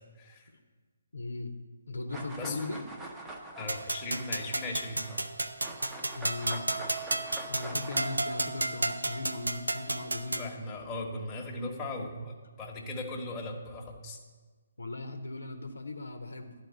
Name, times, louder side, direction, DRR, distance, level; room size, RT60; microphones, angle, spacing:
voice 1, 0.2-0.5 2.4-2.6 3.6-5.2 10.4-14.2, left 2 dB, 15° left, -2 dB, 1.3 m, -38 dB
voice 2, 1.1-1.5 1.9-2.8 6.2-6.7 7.5-10.4 14.8-16.5, left 2 dB, 75° left, 5 dB, 0.9 m, -38 dB
sound 1, 2.1-5.3 5.6-8.2, right 1 dB, 10° right, 0.9 m, -45 dB
sound 2, 3.7-10.5, right 2 dB, 85° right, 0.6 m, -33 dB
11.5 x 4.4 x 8.0 m, 1.4 s
figure-of-eight pair, 140°, 0 cm